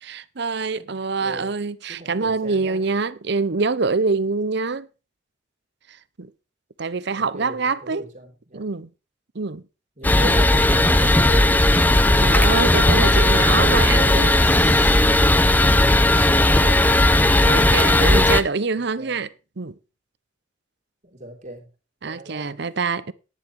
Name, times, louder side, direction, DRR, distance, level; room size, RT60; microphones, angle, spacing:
voice 1, 0.0-4.9 6.2-6.3 6.8-8.1 8.5-8.9 9.3-9.6 12.2-15.0 16.1-16.3 17.5-19.7 22.0-23.1, right 4 dB, 60° right, 0.8 m, -25 dB
voice 2, 0.8-1.5 1.9-2.8 7.1-8.7 10.0-11.7 18.7-19.2 21.0-21.7 22.0-22.6, right 1 dB, 40° right, 3.6 m, -38 dB
sound 1, 10.0-18.4, left 1 dB, 10° left, 0.6 m, -16 dB
10.5 x 10.0 x 4.6 m
head